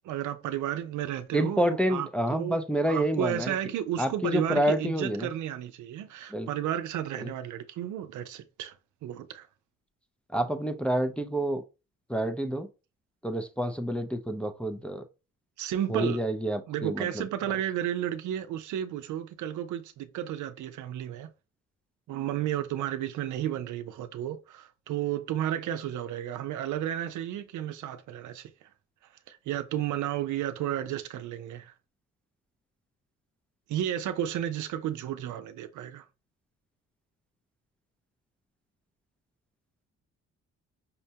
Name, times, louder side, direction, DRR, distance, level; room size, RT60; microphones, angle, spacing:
voice 1, 0.0-2.6 2.8-8.8 9.0-9.5 15.6-16.2 16.7-21.3 22.1-28.7 29.3-31.7 33.7-36.0, right 11 dB, 75° right, 0.6 m, -32 dB
voice 2, 1.3-3.6 4.0-5.3 6.3-6.5 7.2-7.3 10.3-11.6 12.1-12.7 13.2-15.0 15.9-17.3, equal, 5° left, 0.5 m, -28 dB
5.5 x 2.1 x 2.8 m
cardioid pair, 90°, 30 cm